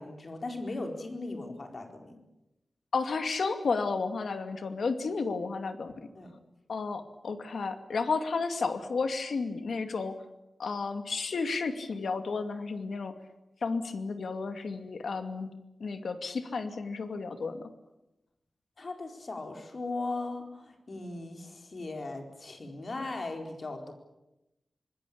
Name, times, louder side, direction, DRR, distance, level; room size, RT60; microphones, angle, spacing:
voice 1, 0.0-2.2 6.1-6.3 18.8-23.9, left 2 dB, 45° left, 4 dB, 4.3 m, -38 dB
voice 2, 2.9-6.1 6.7-10.2 10.6-13.1 13.6-15.5 15.8-17.6, left 4 dB, 75° left, 8 dB, 2.5 m, -32 dB
26.0 x 21.0 x 8.7 m, 0.93 s
wide cardioid pair, 140°, 0 cm